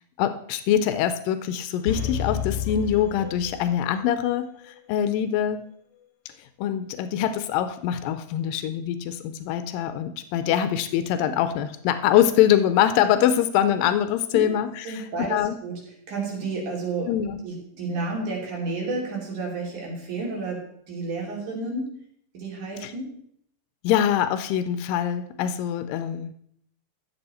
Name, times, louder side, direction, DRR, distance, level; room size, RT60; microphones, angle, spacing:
voice 1, 0.2-5.6 6.6-15.6 17.1-17.4 22.8-22.9 23.8-26.3, left 10 dB, 90° left, 11 dB, 2.4 m, -24 dB
sound 1, 1.9-4.1 4.4-4.5, left 8 dB, 60° left, 2.8 m, -31 dB
voice 2, 14.9-15.8 16.1-17.1 17.4-20.6 20.9-21.9 22.3-23.1, right 3 dB, 60° right, -2 dB, 4.3 m, -31 dB
13.5 x 7.7 x 4.3 m, 0.68 s
omnidirectional pair, 3.9 m